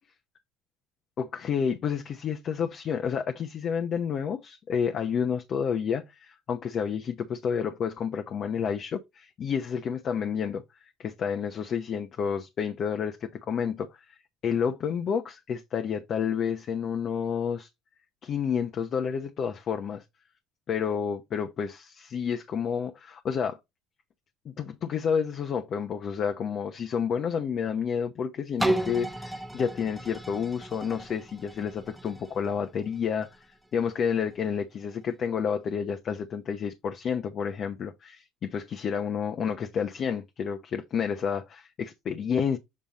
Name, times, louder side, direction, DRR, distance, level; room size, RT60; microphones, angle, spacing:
voice 1, 1.2-10.6 11.0-14.2 14.4-17.7 18.2-20.0 20.7-23.6 24.4-33.5 33.7-42.6, left 7 dB, 45° left, 0.9 m, -30 dB
sound 1, 28.6-34.3 34.9-35.0, right 1 dB, ahead, 1.0 m, -34 dB
7.5 x 3.5 x 4.0 m
cardioid pair, 110°, 0 cm